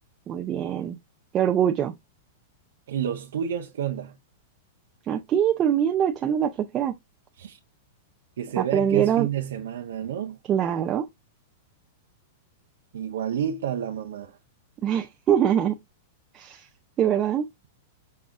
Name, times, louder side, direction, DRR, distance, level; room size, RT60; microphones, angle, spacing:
voice 1, 0.3-1.0 1.3-2.0 5.1-6.9 8.6-9.3 10.5-11.1 14.8-15.8 16.3-16.7 17.0-17.5, right 9 dB, 25° right, 0.4 m, -23 dB
voice 2, 2.9-4.2 7.4-7.6 8.4-10.4 12.9-14.4, right 9 dB, 85° right, 0.6 m, -30 dB
5.4 x 2.3 x 3.6 m
supercardioid pair, 145°, 0 cm